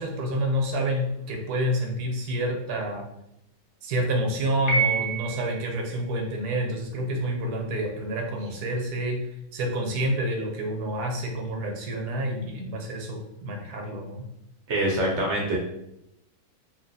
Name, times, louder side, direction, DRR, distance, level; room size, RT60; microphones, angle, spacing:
voice 1, 0.0-3.1 3.8-9.3 9.5-14.3, right 1 dB, 80° right, 1 dB, 1.2 m, -28 dB
Piano, 4.7-5.8, right 5 dB, 55° left, 1.2 m, -26 dB
voice 2, 14.7-15.6, right 1 dB, 60° right, -2 dB, 0.8 m, -24 dB
2.9 x 2.8 x 2.6 m, 0.83 s
omnidirectional pair, 1.6 m